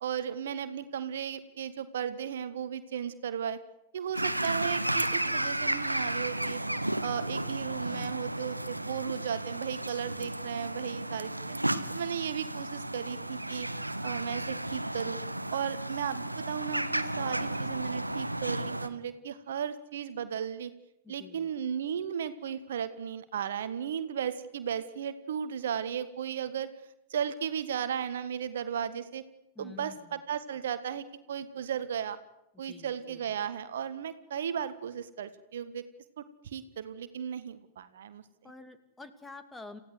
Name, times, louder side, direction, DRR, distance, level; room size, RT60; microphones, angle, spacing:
voice 1, 0.0-3.6 3.9-6.6 7.0-11.6 11.9-13.7 14.0-15.2 15.5-20.7 21.1-26.7 27.1-29.2 29.6-32.2 32.6-35.8 36.4-38.2, right 8 dB, 60° right, 12 dB, 1.5 m, -35 dB
sound 1, 4.1-18.9, right 1 dB, 85° right, 1.2 m, -33 dB
voice 2, 21.0-21.5 29.6-30.2 32.5-33.3 38.4-39.8, left 3 dB, 10° left, 10 dB, 2.5 m, -49 dB
28.5 x 16.0 x 8.0 m, 0.89 s
figure-of-eight pair, 90°, 0 cm